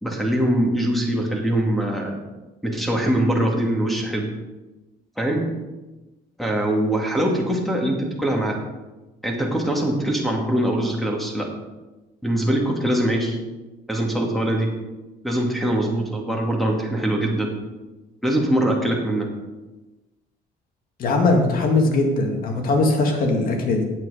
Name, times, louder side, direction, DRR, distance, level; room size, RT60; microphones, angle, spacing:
voice 1, 0.0-2.1 2.6-4.3 5.2-5.4 6.4-8.6 9.2-11.5 12.2-13.4 13.9-14.7 15.2-17.5 18.2-19.3, right 1 dB, ahead, 0 dB, 2.2 m, -22 dB
voice 2, 21.0-23.8, left 2 dB, 60° left, 3 dB, 2.0 m, -20 dB
8.5 x 8.2 x 5.0 m, 1.1 s
cardioid pair, 110°, 17 cm